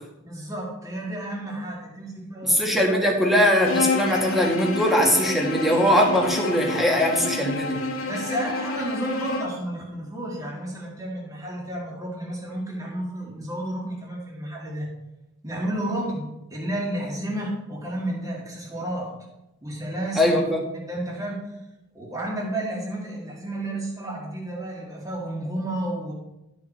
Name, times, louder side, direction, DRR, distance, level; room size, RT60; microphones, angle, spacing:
voice 1, 0.3-2.6 8.1-14.9 15.4-19.2 19.6-20.4 20.9-21.6 21.9-26.1, right 1 dB, 15° right, -3 dB, 2.1 m, -31 dB
voice 2, 2.4-7.8 20.2-20.6, equal, ahead, 0 dB, 1.7 m, -21 dB
Bowed string instrument, 3.6-9.6, left 3 dB, 90° left, 1.1 m, -29 dB
12.0 x 5.7 x 4.4 m, 0.95 s
head